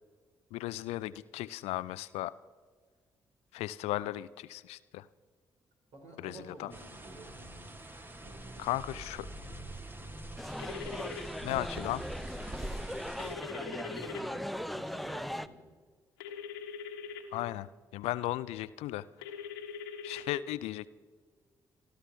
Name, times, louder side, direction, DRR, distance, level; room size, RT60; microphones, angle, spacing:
voice 1, 0.5-2.3 3.5-5.1 6.2-6.7 8.6-9.3 11.4-12.0 17.3-19.1 20.0-20.9, left 16 dB, 65° left, 18 dB, 0.4 m, -36 dB
voice 2, 5.9-7.8 8.2-9.1 9.4-10.3 13.5-15.7, right 1 dB, 65° right, -1 dB, 4.2 m, -52 dB
sound 1, 6.7-13.4, right 1 dB, 20° right, 1.4 m, -44 dB
sound 2, 10.4-15.5, equal, ahead, 0.6 m, -39 dB
sound 3, 10.6-11.2 13.2-14.2 16.2-17.2 19.2-20.2, left 7 dB, 80° left, 1.3 m, -42 dB
28.0 x 12.5 x 3.4 m, 1.5 s
figure-of-eight pair, 40°, 11 cm